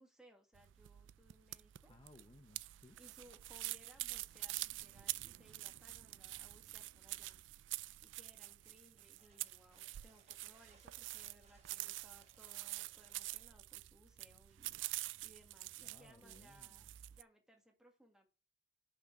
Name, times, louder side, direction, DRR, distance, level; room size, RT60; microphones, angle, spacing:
voice 1, 0.0-1.9 3.0-7.4 8.0-14.8 15.2-16.9 17.1-18.3, equal, 5° right, 1.8 m, -65 dB
sound 1, 0.5-17.2, right 18 dB, 75° right, 0.3 m, -47 dB
voice 2, 1.9-3.0 15.8-16.9, left 2 dB, 25° left, 0.6 m, -62 dB
sound 2, 8.6-13.6, right 4 dB, 35° right, 1.4 m, -70 dB
5.9 x 5.6 x 6.6 m
head